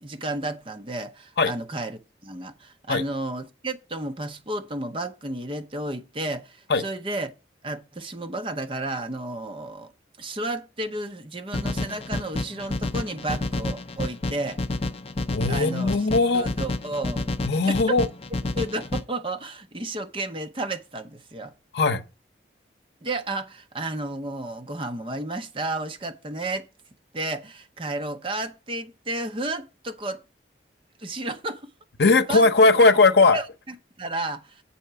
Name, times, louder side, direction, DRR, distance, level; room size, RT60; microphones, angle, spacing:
voice 1, 0.0-7.3 7.6-9.9 10.2-14.6 15.5-16.0 16.3-17.3 17.9-18.0 18.5-21.5 23.0-26.7 27.1-30.2 31.0-31.7 32.3-32.5 33.3-34.6, right 2 dB, 30° right, 0.7 m, -32 dB
sound 1, 11.5-19.0, left 2 dB, 35° left, 0.5 m, -29 dB
voice 2, 15.3-16.5 17.4-18.1 21.7-22.0 32.0-33.4, left 3 dB, 65° left, 0.8 m, -18 dB
8.4 x 4.2 x 6.8 m
head